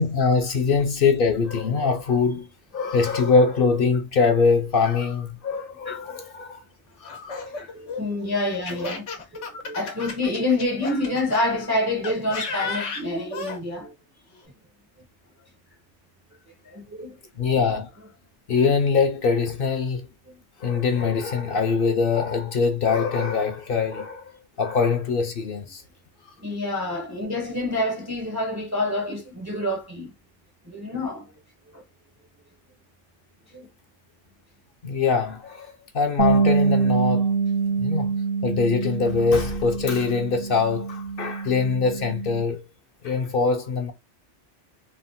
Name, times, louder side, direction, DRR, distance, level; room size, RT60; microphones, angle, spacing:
voice 1, 0.0-2.5 2.7-6.6 7.0-7.6 8.7-8.9 9.5-9.6 17.4-17.9 18.5-20.1 20.6-25.8 34.8-37.3 37.7-42.6 43.0-43.9, left 5 dB, 60° left, 0.7 m, -23 dB
voice 2, 5.9-6.2 7.5-9.1 9.3-13.9 16.6-17.2 20.3-20.4 26.4-30.1 30.6-31.3 31.7-31.8 33.5-33.7, left 2 dB, 25° right, 0.4 m, -27 dB
Laughter, 7.0-11.4 12.0-13.6, left 4 dB, 90° left, 1.2 m, -33 dB
Bass guitar, 36.2-42.4, right 5 dB, 75° right, 0.9 m, -25 dB
3.2 x 2.1 x 2.5 m
omnidirectional pair, 1.2 m